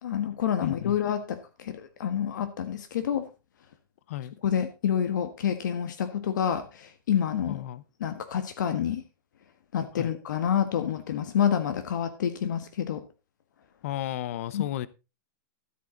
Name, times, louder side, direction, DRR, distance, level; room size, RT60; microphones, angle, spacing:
voice 1, 0.0-3.3 4.4-7.6 8.0-9.0 9.7-13.0 14.5-14.6, left 9 dB, 70° left, 9 dB, 1.6 m, -28 dB
voice 2, 0.6-1.0 4.1-4.3 7.4-7.8 10.0-10.1 13.8-14.9, left 13 dB, 45° left, 19 dB, 0.7 m, -33 dB
13.0 x 8.8 x 3.9 m, 0.29 s
supercardioid pair, 175°, 11 cm